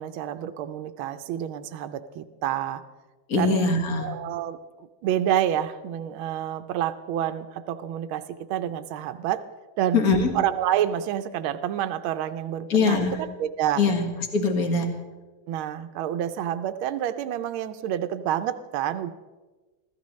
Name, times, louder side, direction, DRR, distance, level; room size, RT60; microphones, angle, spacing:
voice 1, 0.0-2.8 3.4-3.7 4.0-8.2 8.5-9.4 9.8-10.0 10.3-13.8 15.5-19.1, right 11 dB, 75° right, 10 dB, 1.5 m, -28 dB
voice 2, 3.3-4.1 9.9-10.3 12.7-13.2 13.8-14.9, left 4 dB, 45° left, 4 dB, 2.0 m, -22 dB
25.5 x 14.5 x 3.1 m, 1.3 s
omnidirectional pair, 2.3 m